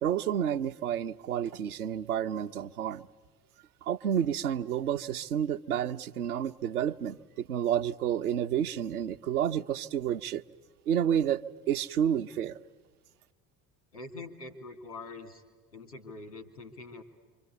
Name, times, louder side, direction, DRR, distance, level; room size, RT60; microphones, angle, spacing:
voice 1, 0.0-3.1 3.8-10.4 10.9-12.6, right 9 dB, 75° right, 0.7 m, -30 dB
voice 2, 13.9-15.4 15.7-17.0, left 3 dB, 90° left, 2.5 m, -44 dB
28.0 x 25.0 x 8.2 m
figure-of-eight pair, 55°, 45 cm